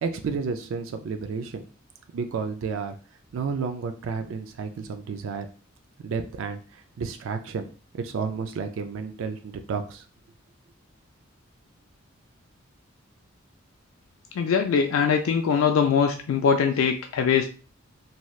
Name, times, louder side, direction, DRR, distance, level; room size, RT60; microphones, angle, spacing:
voice 1, 0.0-1.6 2.1-2.9 3.3-5.5 6.0-7.7 7.9-10.0, right 5 dB, 70° right, 7 dB, 0.3 m, -31 dB
voice 2, 14.4-17.5, left 6 dB, 80° left, 5 dB, 0.3 m, -22 dB
3.1 x 2.7 x 2.3 m, 0.38 s
head